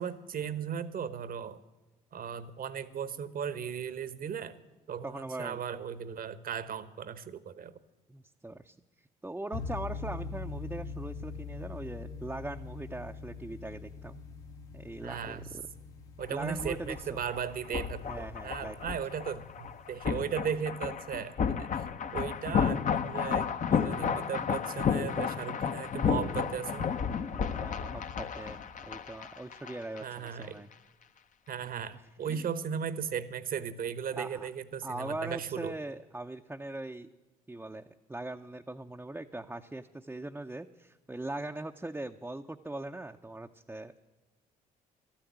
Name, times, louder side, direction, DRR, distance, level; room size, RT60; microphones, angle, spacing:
voice 1, 0.0-1.6 2.1-4.6 4.9-7.8 15.0-15.5 16.2-26.9 30.0-30.6 31.5-35.7, right 7 dB, 50° right, 16 dB, 1.0 m, -37 dB
voice 2, 5.0-5.6 8.1-14.2 14.7-15.6 16.3-17.2 18.0-18.8 27.3-30.7 31.9-32.5 34.1-34.5 34.8-37.1 37.5-43.9, right 2 dB, 10° right, 3 dB, 0.6 m, -41 dB
sound 1, 9.5-20.3, left 4 dB, 75° left, 1.6 m, -43 dB
sound 2, 16.2-30.0 30.3-30.4, left 7 dB, 45° left, 0.8 m, -32 dB
12.5 x 8.7 x 9.3 m, 1.2 s
hypercardioid pair, 55°, 19 cm